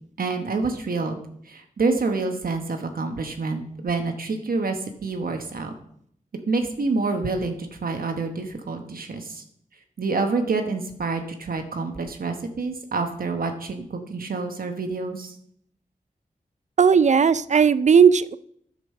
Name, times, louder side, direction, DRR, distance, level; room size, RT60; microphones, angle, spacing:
voice 1, 0.2-1.2 1.5-4.8 5.0-5.7 6.5-7.6 7.8-9.4 10.0-15.3, right 3 dB, 75° right, 5 dB, 1.1 m, -27 dB
voice 2, 16.8-18.4, right 6 dB, 50° right, 17 dB, 0.4 m, -16 dB
10.0 x 5.3 x 6.5 m, 0.69 s
wide cardioid pair, 65°, 15 cm